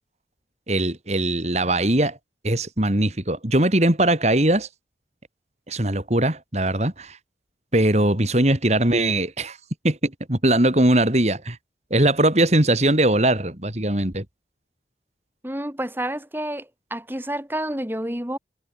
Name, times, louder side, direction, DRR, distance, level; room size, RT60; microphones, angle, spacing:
voice 1, 0.7-2.2 2.4-4.7 5.7-7.2 7.7-9.6 9.8-11.6 11.9-14.2, right 1 dB, 40° right, 2.8 m, -20 dB
voice 2, 15.4-18.4, right 1 dB, 10° right, 3.1 m, -29 dB
head